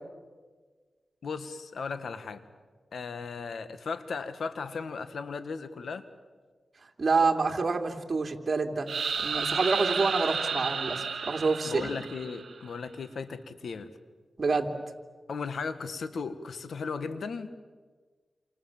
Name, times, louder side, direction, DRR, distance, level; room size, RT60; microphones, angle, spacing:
voice 1, 1.2-2.4 2.9-6.0 11.7-13.9 15.3-17.5, left 5 dB, 80° left, 10 dB, 1.7 m, -36 dB
voice 2, 7.0-8.9 9.2-11.9 14.4-14.7, right 4 dB, 50° right, 3 dB, 2.9 m, -27 dB
sound 1, 8.9-12.7, right 5 dB, 75° right, 1.8 m, -32 dB
28.0 x 27.5 x 7.4 m, 1.4 s
cardioid pair, 55°, 0 cm